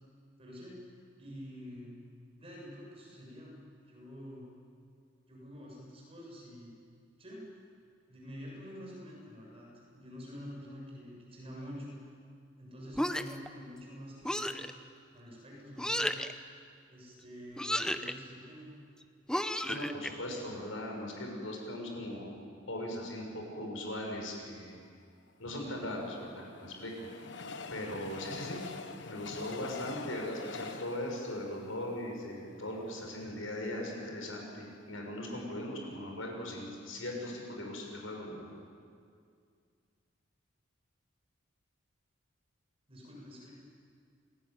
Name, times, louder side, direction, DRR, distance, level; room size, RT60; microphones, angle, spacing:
voice 1, 0.4-2.0 2.3-3.6 3.8-4.5 5.3-6.7 7.2-7.4 8.1-12.0 12.6-14.7 15.1-16.2 16.9-18.7 42.9-43.5, equal, 30° right, -3 dB, 7.4 m, -47 dB
sound 1, 12.9-13.5 14.2-14.7 15.8-16.3 17.6-18.1 19.3-20.1, left 1 dB, 5° left, 0.8 m, -32 dB
voice 2, 19.6-22.4 22.7-24.8 25.4-27.4 27.7-28.6 29.1-38.5, left 1 dB, 85° left, 1 dB, 6.7 m, -39 dB
Train, 25.6-32.9 33.4-33.5 33.7-33.8, left 4 dB, 60° left, 1.2 m, -45 dB
28.0 x 20.0 x 9.5 m, 2.2 s
head